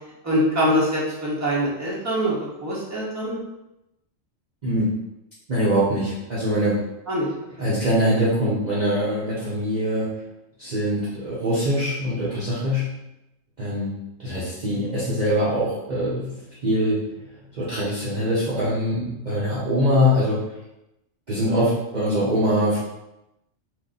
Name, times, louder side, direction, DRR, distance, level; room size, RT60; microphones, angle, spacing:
voice 1, 0.2-2.4 2.6-3.4 7.1-7.3 7.6-7.7, equal, 15° right, -7 dB, 0.9 m, -23 dB
voice 2, 5.5-6.8 7.6-10.1 10.6-12.9 13.6-16.3 16.6-17.1 17.5-20.4 21.3-22.8, equal, 40° right, -9 dB, 0.8 m, -23 dB
3.1 x 2.6 x 3.8 m, 0.90 s
omnidirectional pair, 1.4 m